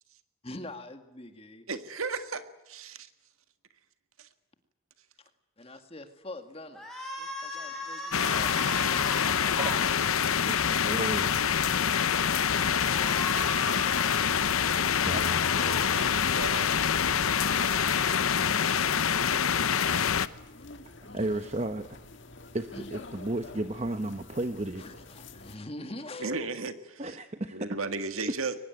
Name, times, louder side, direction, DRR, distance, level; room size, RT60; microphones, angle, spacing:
voice 1, 0.4-1.7 5.2-5.3 5.6-6.9 7.2-8.8 20.4-21.5 22.7-22.9 24.8-26.5, left 2 dB, 25° left, 7 dB, 2.0 m, -45 dB
voice 2, 1.7-3.1 4.2-4.3 15.1-15.2 15.5-16.7 26.2-27.2 27.5-28.6, right 4 dB, 80° right, 9 dB, 1.9 m, -35 dB
sound 1, 6.7-9.8 12.9-14.1 15.3-15.9 17.0-18.2, left 1 dB, ahead, 5.7 m, -38 dB
sound 2, 8.1-20.3, left 7 dB, 85° left, 0.8 m, -26 dB
sound 3, 8.3-25.6, left 2 dB, 60° left, 1.9 m, -49 dB
voice 3, 9.6-9.9 10.5-11.3 15.0-15.4 21.1-22.0 22.5-24.8 27.0-27.7, right 2 dB, 30° right, 9 dB, 0.9 m, -33 dB
23.0 x 20.0 x 9.3 m, 0.97 s
head